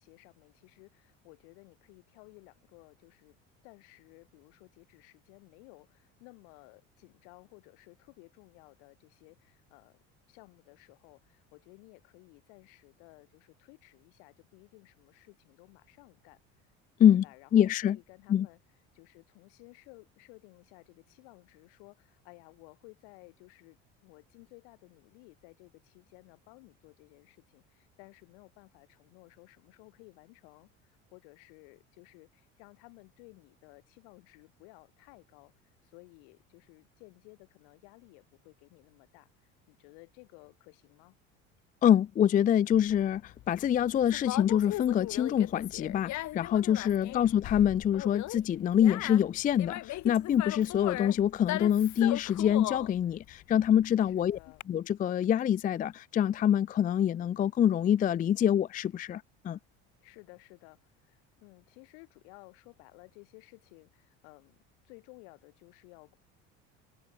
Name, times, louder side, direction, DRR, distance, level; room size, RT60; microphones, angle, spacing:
voice 1, 0.0-3.4 3.6-10.0 10.3-16.4 17.2-18.6 18.9-41.2 46.9-47.3 54.0-54.6 60.0-64.6 64.8-66.2, left 40 dB or more, 80° left, 6.1 m, -56 dB
voice 2, 17.5-18.0 18.3-18.5 41.8-54.4 54.7-59.6, left 10 dB, 25° left, 0.4 m, -25 dB
Conversation, 42.7-54.6, left 16 dB, 60° left, 1.9 m, -39 dB
supercardioid pair, 85°, 32 cm